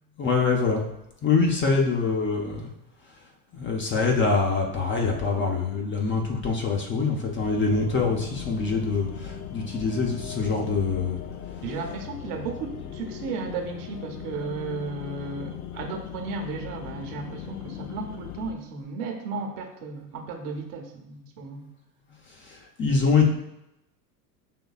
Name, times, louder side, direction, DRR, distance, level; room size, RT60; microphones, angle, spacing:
voice 1, 0.2-0.8 1.2-2.7 3.5-11.2 22.4-23.3, left 4 dB, 25° left, 0 dB, 0.7 m, -24 dB
sound 1, 7.4-18.5, left 9 dB, 65° left, 0.6 m, -38 dB
voice 2, 11.6-21.6, right 4 dB, 50° right, 3 dB, 1.0 m, -34 dB
5.3 x 3.1 x 2.3 m, 0.86 s
hypercardioid pair, 80°, 49 cm